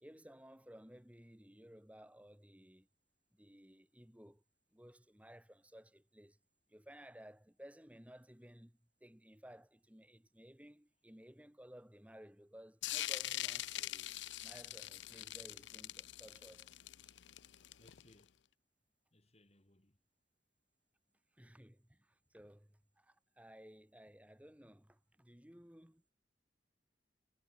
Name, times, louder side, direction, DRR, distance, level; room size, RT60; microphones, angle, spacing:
voice 1, 0.0-2.9 3.3-4.4 4.7-6.4 6.7-14.1 14.4-16.8 17.0-17.1 21.3-26.0, equal, 10° right, 1.6 m, -58 dB
sound 1, 12.8-18.1, left 14 dB, 80° left, 0.6 m, -42 dB
voice 2, 17.7-18.4 19.1-20.0, left 1 dB, 35° left, 2.4 m, -67 dB
head